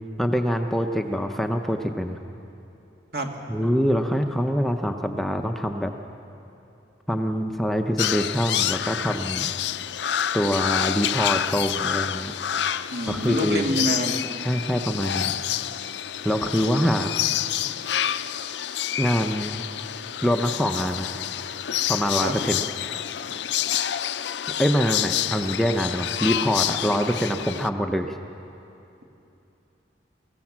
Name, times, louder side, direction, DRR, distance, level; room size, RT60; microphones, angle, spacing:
voice 1, 0.2-2.2 3.5-5.9 7.1-9.5 10.3-12.3 13.1-13.6 14.4-15.3 16.2-17.1 19.0-19.6 20.2-21.1 21.9-22.6 24.6-28.1, equal, ahead, 4 dB, 0.6 m, -24 dB
sound 1, 8.0-27.7, left 10 dB, 65° left, 0.5 m, -28 dB
voice 2, 12.9-14.2 22.2-22.4, equal, 60° right, 2 dB, 2.2 m, -26 dB
24.0 x 15.5 x 7.4 m, 2.8 s
head